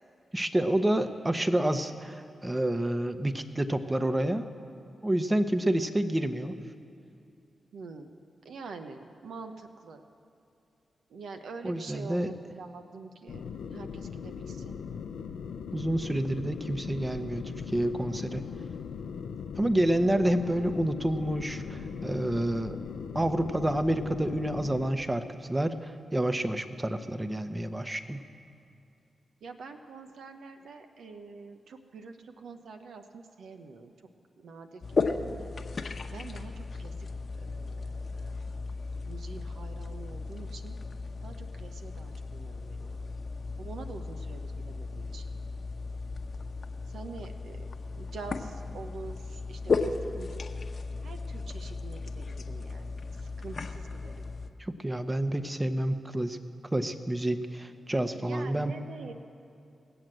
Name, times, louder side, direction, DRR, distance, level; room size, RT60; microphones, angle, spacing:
voice 1, 0.3-4.5 5.0-6.6 11.6-12.3 15.7-18.5 19.6-22.8 23.1-28.2 54.6-56.4 56.7-58.7, right 1 dB, 20° right, 10 dB, 0.9 m, -29 dB
voice 2, 7.7-8.2 8.4-10.0 11.1-14.8 29.4-33.9 34.4-35.5 36.1-36.9 37.4-38.4 39.0-40.8 41.2-43.0 43.6-45.2 46.9-47.6 48.0-50.6 51.0-54.3 58.1-59.1, right 4 dB, 80° right, 7 dB, 0.7 m, -46 dB
sound 1, 13.3-24.9, left 6 dB, 85° left, 0.5 m, -39 dB
sound 2, 34.8-54.5, left 4 dB, 55° left, 0.9 m, -35 dB
19.0 x 7.9 x 7.6 m, 2.7 s
supercardioid pair, 40°, 0 cm